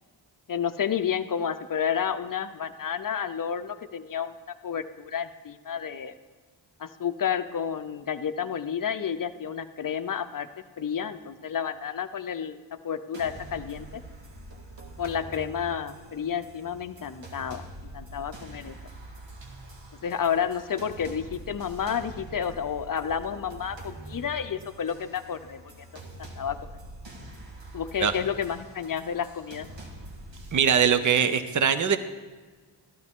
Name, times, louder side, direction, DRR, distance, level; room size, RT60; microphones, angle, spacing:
voice 1, 0.5-4.3 4.6-6.1 6.8-10.5 10.8-14.0 15.0-17.6 17.9-18.7 20.0-25.6 26.2-26.6 27.7-29.7, left 8 dB, 50° left, 10 dB, 0.6 m, -30 dB
sound 1, 13.1-30.6, right 1 dB, 75° right, 1.8 m, -44 dB
voice 2, 30.5-32.0, right 7 dB, 40° right, 11 dB, 0.6 m, -22 dB
13.5 x 12.0 x 3.6 m, 1.4 s
wide cardioid pair, 160°, 44 cm